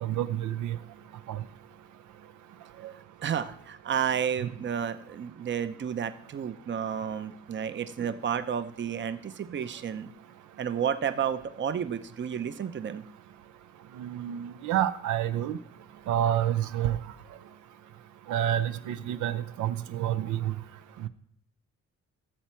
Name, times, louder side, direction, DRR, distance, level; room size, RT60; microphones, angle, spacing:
voice 1, 0.0-0.8 1.3-1.4 2.8-2.9 14.0-15.6 16.1-17.0 18.3-20.5 21.0-21.1, right 11 dB, 80° right, 11 dB, 0.6 m, -28 dB
voice 2, 3.2-10.1 10.6-13.0, right 8 dB, 40° right, 12 dB, 0.7 m, -31 dB
13.0 x 7.2 x 4.5 m, 0.69 s
cardioid pair, 90°, 30 cm